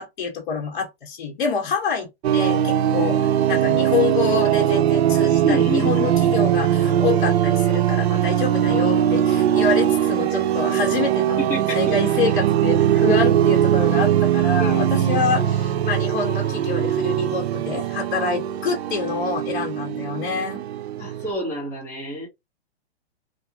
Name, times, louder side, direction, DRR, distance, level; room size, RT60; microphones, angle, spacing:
voice 1, 0.0-11.4 11.7-20.6, left 5 dB, 50° left, 1.1 m, -27 dB
sound 1, 2.2-21.3, right 10 dB, 80° right, 0.5 m, -20 dB
voice 2, 5.4-6.5 11.4-12.0 14.6-15.5 21.0-22.3, equal, 5° left, 1.1 m, -29 dB
2.6 x 2.3 x 2.8 m
hypercardioid pair, 155°, 31 cm